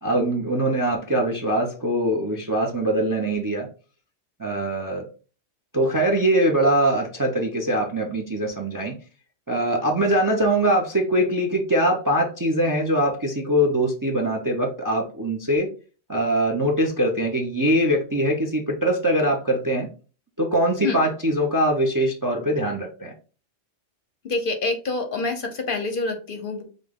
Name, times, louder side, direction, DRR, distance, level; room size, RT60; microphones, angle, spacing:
voice 1, 0.0-3.7 4.4-5.0 5.7-8.9 9.5-15.7 16.1-19.9 20.4-23.1, right 1 dB, 25° right, 2 dB, 0.4 m, -22 dB
voice 2, 24.2-26.6, left 3 dB, 55° left, 6 dB, 0.7 m, -26 dB
5.2 x 2.3 x 3.6 m, 0.37 s
omnidirectional pair, 1.2 m